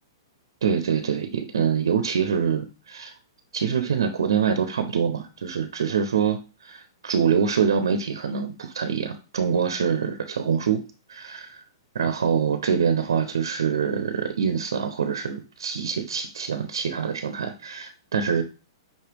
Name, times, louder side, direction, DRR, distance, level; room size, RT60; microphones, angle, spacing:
voice 1, 0.6-3.1 3.5-10.8 11.1-11.6 11.9-18.4, right 7 dB, 85° right, 8 dB, 0.5 m, -25 dB
5.3 x 2.9 x 3.3 m, 0.34 s
hypercardioid pair, 145°, 2 cm